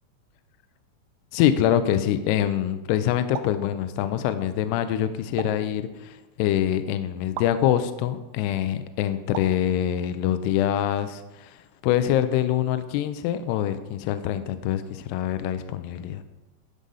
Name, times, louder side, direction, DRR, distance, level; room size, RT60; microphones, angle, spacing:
voice 1, 1.3-16.2, left 11 dB, 80° left, 10 dB, 2.4 m, -25 dB
sound 1, 3.3-3.7 5.4-5.7 7.4-7.6 9.3-9.7, right 9 dB, 85° right, 3.0 m, -35 dB
11.5 x 5.1 x 5.5 m, 1.0 s
omnidirectional pair, 5.3 m